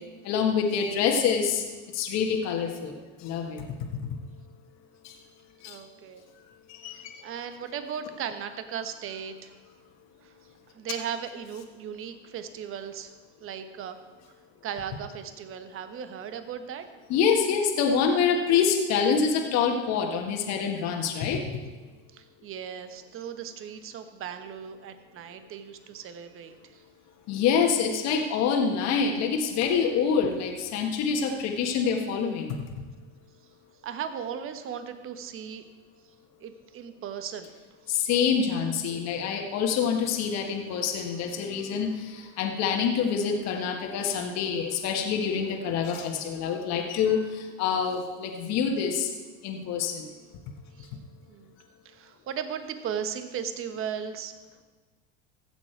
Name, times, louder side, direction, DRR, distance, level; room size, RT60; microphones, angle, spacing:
voice 1, 0.2-1.6 1.9-3.7 5.0-5.2 5.6-5.8 6.7-7.1 17.1-21.4 27.3-32.6 37.9-49.1 49.4-50.1, left 6 dB, 55° left, 2 dB, 1.6 m, -26 dB
voice 2, 5.6-6.2 6.9-9.5 10.2-10.3 10.7-13.1 13.4-14.0 14.6-16.8 22.1-26.8 33.8-35.7 36.4-37.5 50.8-50.9 51.3-51.6 51.8-54.3, right 8 dB, 40° right, 9 dB, 1.2 m, -37 dB
15.0 x 7.2 x 4.6 m, 1.3 s
hypercardioid pair, 95°, 32 cm